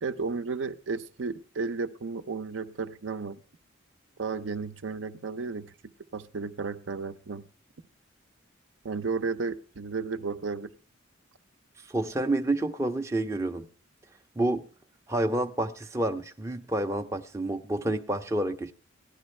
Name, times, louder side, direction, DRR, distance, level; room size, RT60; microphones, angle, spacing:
voice 1, 0.0-3.4 4.2-5.7 6.1-7.5 8.8-10.7, right 4 dB, 75° right, 0.6 m, -33 dB
voice 2, 11.8-13.7 14.4-14.6 15.1-18.7, right 1 dB, 15° right, 0.5 m, -29 dB
16.5 x 11.5 x 3.2 m
head